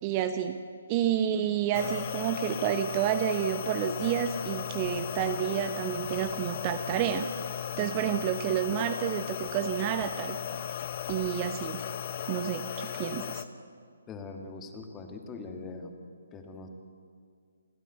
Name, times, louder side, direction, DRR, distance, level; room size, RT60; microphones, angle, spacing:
voice 1, 0.0-0.6 0.9-7.3 7.8-10.4 11.1-11.8 12.3-13.4, right 10 dB, 25° right, 9 dB, 0.9 m, -29 dB
sound 1, 1.7-13.4, left 10 dB, 35° left, 0.9 m, -36 dB
voice 2, 14.1-15.9 16.3-16.7, left 3 dB, 15° left, 4 dB, 2.0 m, -42 dB
29.5 x 12.5 x 8.1 m, 2.1 s
figure-of-eight pair, 135°, 0 cm